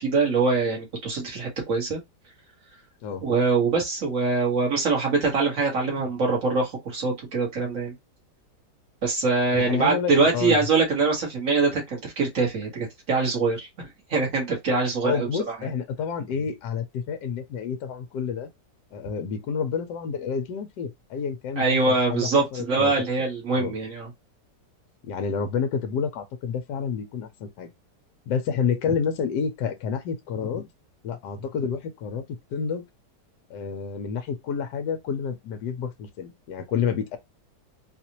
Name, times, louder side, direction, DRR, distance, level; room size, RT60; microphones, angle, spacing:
voice 1, 0.0-2.0 3.2-8.0 9.0-15.5 21.6-24.1, right 4 dB, 50° right, 1.9 m, -24 dB
voice 2, 9.5-10.6 15.0-18.5 18.9-22.9 23.5-23.7 25.0-27.7 28.3-30.7 31.0-32.2 32.5-32.8 33.5-37.2, left 6 dB, 75° left, 1.3 m, -29 dB
4.0 x 2.5 x 2.9 m
omnidirectional pair, 1.9 m